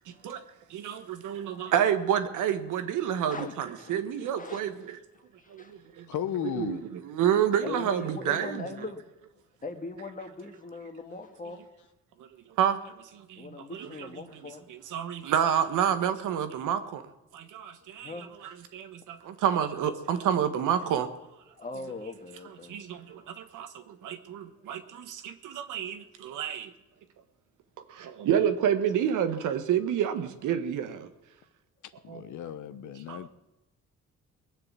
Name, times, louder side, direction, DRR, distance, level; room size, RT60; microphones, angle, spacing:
voice 1, 0.1-0.4 0.7-5.0 5.5-6.1 6.4-8.7 12.2-14.4 14.7-17.0 17.3-21.1 22.4-26.7 27.9-31.1 32.1-32.2 33.1-33.3, right 9 dB, 80° right, 10 dB, 1.4 m, -29 dB
voice 2, 1.3-1.7 3.2-4.0 4.4-4.6 5.4-5.7 7.6-9.0 9.6-11.6 13.4-14.6 18.0-18.3 21.5-22.8 23.1-23.3, left 3 dB, 25° left, 6 dB, 1.9 m, -41 dB
voice 3, 6.1-6.8 32.0-33.3, left 11 dB, 75° left, 13 dB, 1.0 m, -34 dB
20.5 x 7.0 x 8.4 m, 0.99 s
cardioid pair, 90°, 30 cm